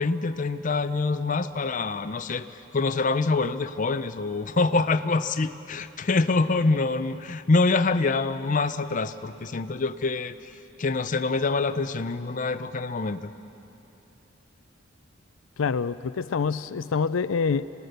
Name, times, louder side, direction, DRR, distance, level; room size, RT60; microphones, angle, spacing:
voice 1, 0.0-2.5 2.7-10.4 10.8-13.3, left 3 dB, 40° left, 11 dB, 0.6 m, -25 dB
voice 2, 15.6-17.6, left 5 dB, 85° left, 13 dB, 0.5 m, -26 dB
26.0 x 19.0 x 6.7 m, 2.9 s
head